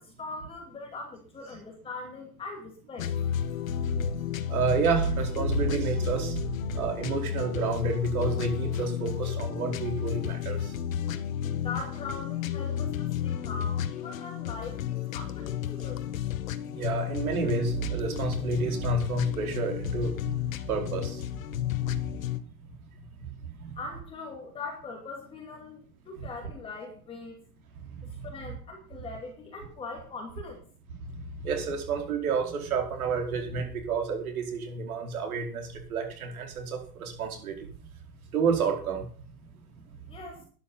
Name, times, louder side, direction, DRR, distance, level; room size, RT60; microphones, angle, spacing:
voice 1, 0.0-3.1 11.5-16.1 23.8-27.4 28.1-30.6 40.1-40.4, left 3 dB, 10° left, 1 dB, 2.6 m, -41 dB
sound 1, 3.0-22.4, left 10 dB, 55° left, 1.3 m, -32 dB
voice 2, 4.5-6.4 6.7-10.7 16.7-20.1 20.7-21.2 23.6-23.7 31.4-37.5 38.3-39.0, right 5 dB, 60° right, 4 dB, 4.8 m, -29 dB
12.5 x 10.5 x 5.7 m, 0.43 s
hypercardioid pair, 160°, 48 cm